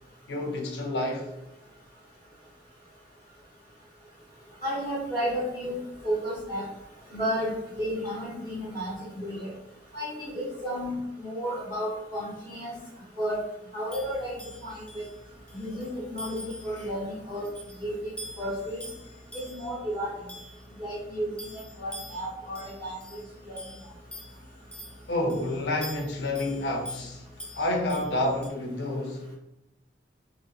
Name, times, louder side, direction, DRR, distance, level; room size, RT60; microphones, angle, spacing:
voice 1, 0.3-1.3 16.8-16.9 25.1-27.2 27.6-29.3, left 1 dB, 65° left, 0.7 m, -29 dB
voice 2, 4.6-5.8 6.0-6.6 7.1-7.5 7.8-9.5 9.9-12.7 13.2-13.4 13.7-15.1 15.5-17.5 17.8-18.0 18.4-18.8 19.3-20.1 20.8-21.3 21.8-23.2 23.5-23.6, equal, 15° right, 0.9 m, -32 dB
sound 1, 13.9-28.5, left 1 dB, 5° left, 0.3 m, -45 dB
2.7 x 2.5 x 2.7 m
head